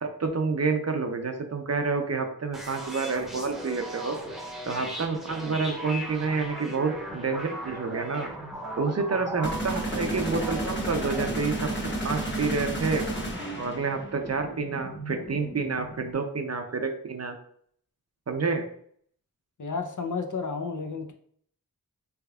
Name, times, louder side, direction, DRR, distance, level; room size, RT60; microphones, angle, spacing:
voice 1, 0.0-4.2 4.7-8.3 8.8-13.1 13.6-17.3 18.3-18.6, right 4 dB, 45° right, 5 dB, 0.5 m, -29 dB
sound 1, 2.5-16.1, equal, ahead, 0.8 m, -39 dB
sound 2, 9.4-14.2, right 1 dB, 30° left, 1.0 m, -32 dB
voice 2, 19.6-21.1, left 4 dB, 55° left, 4 dB, 0.6 m, -32 dB
3.3 x 3.3 x 2.3 m, 0.63 s
wide cardioid pair, 40°, 37 cm